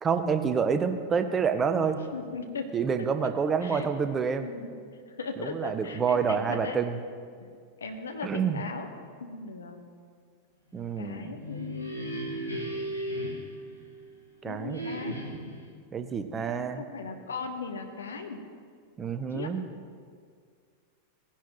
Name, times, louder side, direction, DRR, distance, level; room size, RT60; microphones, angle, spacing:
voice 1, 0.0-2.0 2.7-4.5 5.4-7.0 8.2-8.6 10.7-11.3 14.4-14.8 15.9-16.8 19.0-19.6, right 6 dB, 20° right, 9 dB, 0.7 m, -28 dB
voice 2, 2.1-3.1 3.6-3.9 4.4-6.8 7.4-7.5 7.8-8.9 9.2-9.8 11.0-12.0 14.4-15.2 16.4-18.4 19.3-19.5, left 4 dB, 70° left, 5 dB, 1.1 m, -38 dB
sound 1, 11.2-14.3 14.7-15.7, equal, 85° left, 1.4 m, -36 dB
18.0 x 10.0 x 3.0 m, 2.1 s
figure-of-eight pair, 90°, 0 cm